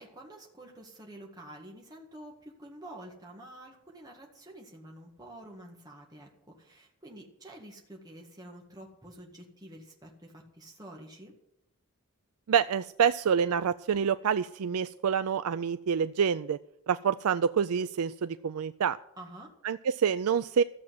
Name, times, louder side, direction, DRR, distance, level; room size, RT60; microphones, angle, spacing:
voice 1, 0.0-11.3 19.2-19.5, right 1 dB, 15° right, 0 dB, 1.9 m, -48 dB
voice 2, 12.5-16.6 16.9-19.0 19.6-20.6, right 7 dB, 85° right, 13 dB, 0.4 m, -27 dB
14.0 x 7.4 x 9.3 m, 0.77 s
head